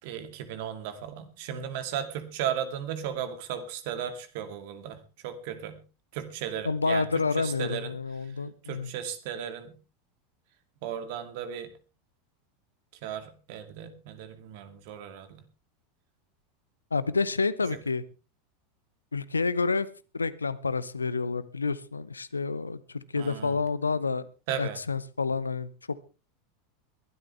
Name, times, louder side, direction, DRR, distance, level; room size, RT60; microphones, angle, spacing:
voice 1, 0.0-5.0 5.2-5.8 6.1-7.1 7.4-7.9 8.6-9.7 10.8-11.7 13.0-15.4 23.2-23.6 24.5-24.8, right 9 dB, 55° right, 9 dB, 2.4 m, -35 dB
voice 2, 6.6-8.9 16.9-18.0 19.1-19.9 20.1-24.3 24.6-26.1, left 4 dB, 80° left, 18 dB, 0.8 m, -29 dB
21.5 x 12.5 x 3.3 m, 0.33 s
figure-of-eight pair, 80°, 0 cm